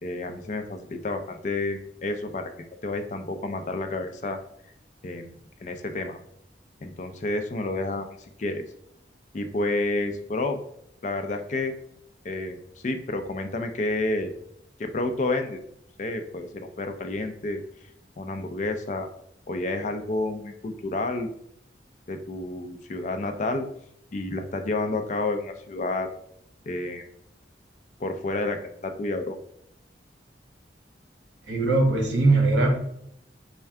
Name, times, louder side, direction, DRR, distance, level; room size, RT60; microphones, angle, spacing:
voice 1, 0.0-4.4 5.0-6.2 6.8-8.6 9.3-10.6 11.0-11.7 12.2-12.6 12.8-14.3 14.8-15.6 16.0-17.6 18.2-19.1 19.5-21.3 22.1-23.6 24.1-26.1 26.7-27.0 28.0-29.4, left 2 dB, 40° left, 6 dB, 0.4 m, -30 dB
voice 2, 31.5-32.8, right 2 dB, 80° right, 2 dB, 1.0 m, -20 dB
4.4 x 2.2 x 3.5 m, 0.74 s
head